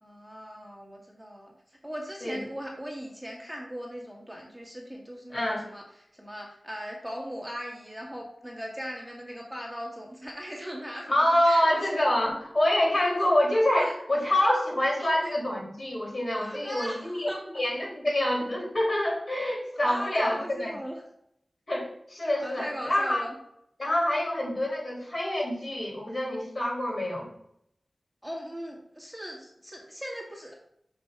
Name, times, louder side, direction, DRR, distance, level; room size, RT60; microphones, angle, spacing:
voice 1, 0.0-11.9 13.1-13.3 13.8-13.9 15.0-15.3 16.3-17.4 19.8-21.0 22.4-23.3 28.2-30.5, equal, 5° right, -2 dB, 1.8 m, -39 dB
voice 2, 5.3-5.6 11.1-17.3 17.5-20.7 21.7-23.2 23.8-27.3, left 1 dB, 45° left, -1 dB, 2.6 m, -26 dB
5.8 x 5.2 x 4.7 m, 0.74 s
wide cardioid pair, 80°, 0 cm